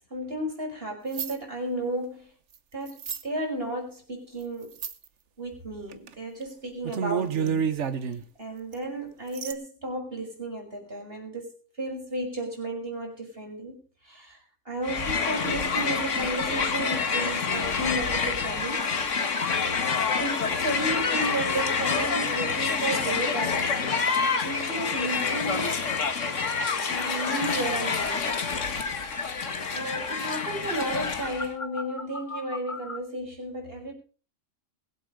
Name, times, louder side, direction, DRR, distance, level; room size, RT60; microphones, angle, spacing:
voice 1, 0.1-2.3 2.7-4.8 5.4-7.6 8.0-11.5 11.8-18.9 20.2-25.8 26.9-28.3 28.7-29.1 29.7-33.9, right 1 dB, 45° right, 2 dB, 5.7 m, -34 dB
sound 1, 1.1-1.4 2.9-3.2 4.7-5.1 5.9-6.1 6.4-6.5 6.8-8.2 8.7-8.8 9.3-9.5, right 7 dB, 60° right, 1.3 m, -29 dB
Crowd, 14.8-31.5, left 5 dB, 60° left, 1.8 m, -28 dB
sound 2, 18.0-33.0, left 3 dB, 25° left, 1.3 m, -38 dB
22.0 x 8.2 x 5.2 m, 0.38 s
omnidirectional pair, 1.4 m